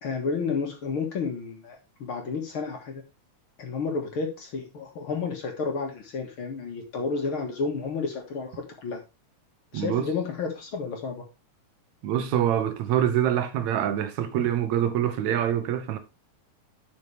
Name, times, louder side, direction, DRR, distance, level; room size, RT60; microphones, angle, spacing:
voice 1, 0.0-3.0 3.6-9.0 9.7-11.2, left 4 dB, 50° left, 2.3 m, -31 dB
voice 2, 9.7-10.1 12.0-16.0, right 10 dB, 75° right, 2.1 m, -25 dB
10.5 x 5.7 x 3.3 m
omnidirectional pair, 3.4 m